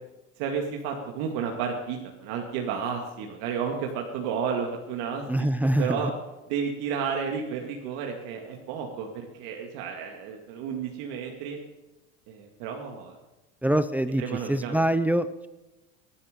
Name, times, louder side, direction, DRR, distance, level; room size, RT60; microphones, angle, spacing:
voice 1, 0.4-5.3 5.8-6.1 6.5-11.6 12.3-13.1 14.2-14.8, right 6 dB, 70° right, 2 dB, 2.3 m, -32 dB
voice 2, 5.3-6.0 13.6-14.2 14.5-15.5, right 1 dB, 5° right, 11 dB, 0.5 m, -24 dB
22.5 x 11.5 x 5.3 m, 1.0 s
supercardioid pair, 125°, 33 cm